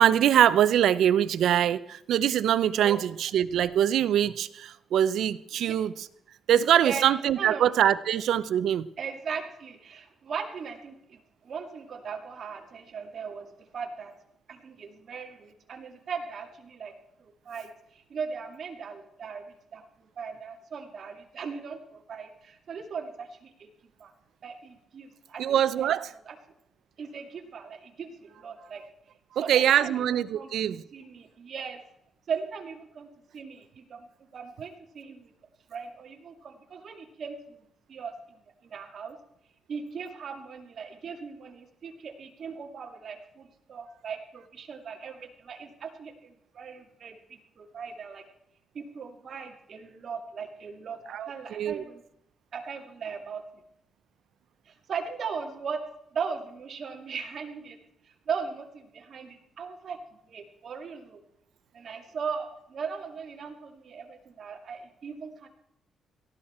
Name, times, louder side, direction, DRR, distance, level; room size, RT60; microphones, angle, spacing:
voice 1, 0.0-6.1 6.5-8.9 25.4-26.1 29.3-30.8 51.1-51.8, right 10 dB, 75° right, 16 dB, 0.6 m, -23 dB
voice 2, 6.5-7.0 7.4-7.7 9.0-14.1 14.5-16.9 17.2-19.8 20.2-23.7 24.0-24.1 24.4-25.9 26.3-26.4 27.0-28.8 29.4-30.0 30.3-30.5 30.9-31.8 32.3-33.1 33.3-34.1 34.3-35.3 35.7-37.6 37.9-39.2 39.7-48.2 48.7-52.0 52.5-53.4 54.7-55.8 56.1-57.8 58.3-60.0 60.3-61.2 61.7-65.5, right 6 dB, 50° right, 3 dB, 2.2 m, -38 dB
18.0 x 14.5 x 4.4 m, 0.76 s
cardioid pair, 135°, 0 cm